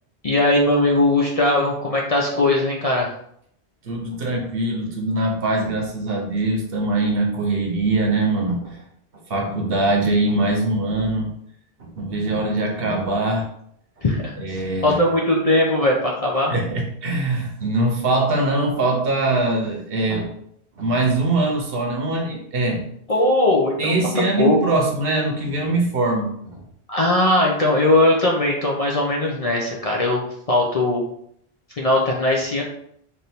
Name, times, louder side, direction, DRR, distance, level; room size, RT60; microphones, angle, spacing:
voice 1, 0.2-3.1 14.0-14.3 14.8-16.5 23.1-24.6 26.9-31.0 31.8-32.6, left 1 dB, 45° left, -2 dB, 0.6 m, -19 dB
voice 2, 3.8-8.8 9.3-11.3 11.8-13.5 14.4-15.0 16.5-20.3 20.8-22.9 23.8-26.6, right 2 dB, 60° right, 1 dB, 1.0 m, -22 dB
3.4 x 2.6 x 4.2 m, 0.69 s
omnidirectional pair, 1.1 m